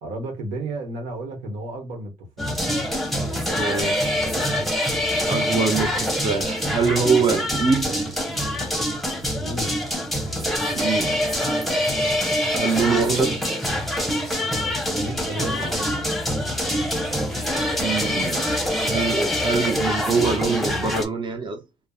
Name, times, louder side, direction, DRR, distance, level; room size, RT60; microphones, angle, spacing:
voice 1, 0.0-2.6 7.3-7.5 9.3-9.8 15.0-16.0, right 2 dB, 80° right, 1.1 m, -33 dB
sound 1, 2.4-21.0, left 1 dB, ahead, 0.8 m, -25 dB
voice 2, 3.6-4.4 5.3-8.0 10.7-11.2 12.5-13.4 17.8-18.5 18.8-21.6, right 5 dB, 35° right, 0.7 m, -24 dB
3.3 x 2.0 x 2.3 m
supercardioid pair, 75°, 13 cm